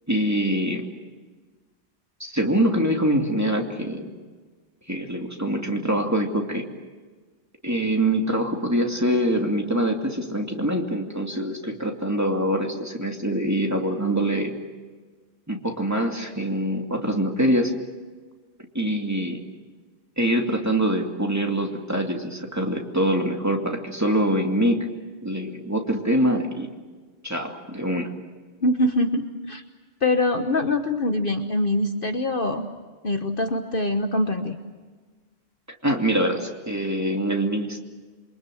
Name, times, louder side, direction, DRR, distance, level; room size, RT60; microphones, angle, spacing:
voice 1, 0.1-0.8 2.2-4.1 4.9-6.7 7.6-14.5 15.5-17.7 18.7-19.4 20.2-24.9 25.2-26.7 27.2-28.1 35.8-37.8, right 1 dB, 10° right, 2 dB, 2.6 m, -24 dB
voice 2, 28.6-29.6 30.0-32.7 33.0-34.6, left 1 dB, 45° left, 6 dB, 1.3 m, -24 dB
28.0 x 24.0 x 7.8 m, 1.4 s
omnidirectional pair, 1.3 m